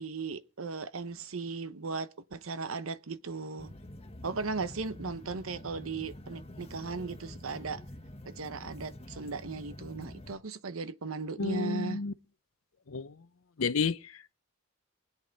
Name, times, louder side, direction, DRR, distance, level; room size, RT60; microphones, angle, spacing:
voice 1, 0.0-3.7 4.2-7.8 8.2-12.0, right 4 dB, 85° right, 0.9 m, -37 dB
sound 1, 3.6-10.4, left 1 dB, 30° left, 1.3 m, -47 dB
voice 2, 11.4-12.1 12.9-13.2 13.6-14.3, left 4 dB, 85° left, 0.7 m, -31 dB
24.0 x 8.3 x 4.0 m
head